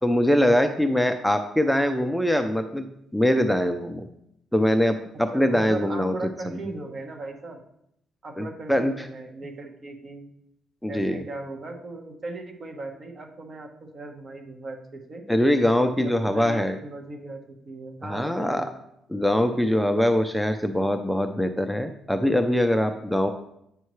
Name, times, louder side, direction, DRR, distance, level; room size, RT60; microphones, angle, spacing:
voice 1, 0.0-2.9 3.1-4.1 4.5-6.1 6.5-6.6 8.4-9.1 10.8-11.2 15.3-16.8 18.0-18.6 19.1-23.3, left 1 dB, ahead, 6 dB, 0.5 m, -23 dB
voice 2, 5.3-7.6 8.2-10.3 10.9-15.2 15.8-18.7, right 2 dB, 45° right, 4 dB, 1.2 m, -38 dB
8.1 x 5.5 x 3.2 m, 0.77 s
cardioid pair, 90°, 0 cm